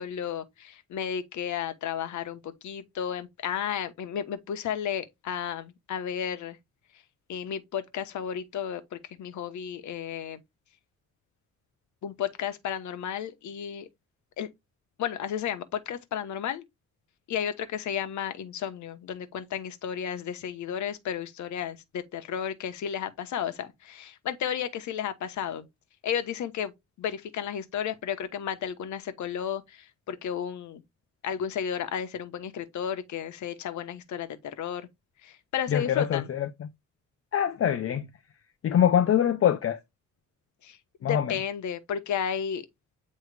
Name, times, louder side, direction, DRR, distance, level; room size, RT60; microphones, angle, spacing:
voice 1, 0.0-6.6 7.3-10.4 12.0-13.9 14.4-14.5 15.0-16.6 17.3-25.7 26.0-30.8 31.2-34.9 35.2-36.3 40.6-42.7, left 8 dB, 70° left, 1.2 m, -33 dB
voice 2, 35.7-36.5 37.3-38.1 38.6-39.8 41.0-41.3, left 9 dB, 50° left, 0.7 m, -24 dB
9.4 x 3.2 x 3.3 m
cardioid pair, 90°, 30 cm